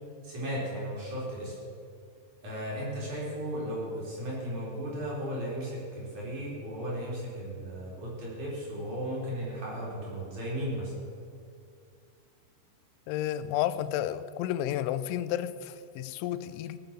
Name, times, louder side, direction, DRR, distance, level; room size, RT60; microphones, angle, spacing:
voice 1, 0.2-1.6 2.4-10.9, equal, 45° right, -6 dB, 5.3 m, -35 dB
voice 2, 13.1-16.8, left 12 dB, 90° left, 14 dB, 3.0 m, -31 dB
19.0 x 8.9 x 7.4 m, 2.4 s
omnidirectional pair, 5.2 m